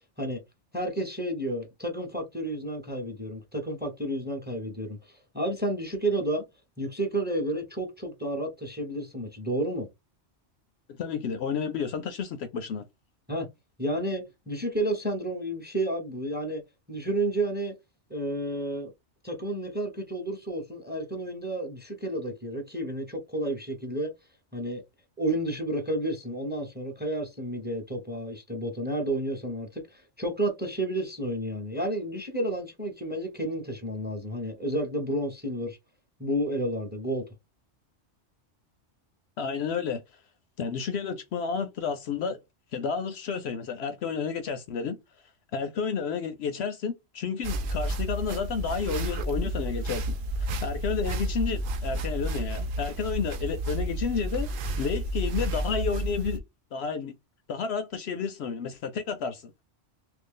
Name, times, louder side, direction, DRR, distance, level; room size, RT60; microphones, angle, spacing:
voice 1, 0.7-6.4 6.8-9.9 13.3-13.5 13.8-16.6 16.9-17.7 18.1-18.9 19.2-24.1 24.5-24.8 25.2-35.8 36.2-37.3, right 1 dB, 10° right, 0.8 m, -31 dB
voice 2, 10.9-12.8 39.4-40.0 40.6-42.4 42.7-45.0 45.5-54.5 54.8-56.4 56.7-57.1 57.5-59.6, left 6 dB, 70° left, 0.8 m, -31 dB
sound 1, 47.4-56.4, right 1 dB, 60° right, 0.6 m, -31 dB
3.0 x 2.5 x 3.7 m
omnidirectional pair, 1.2 m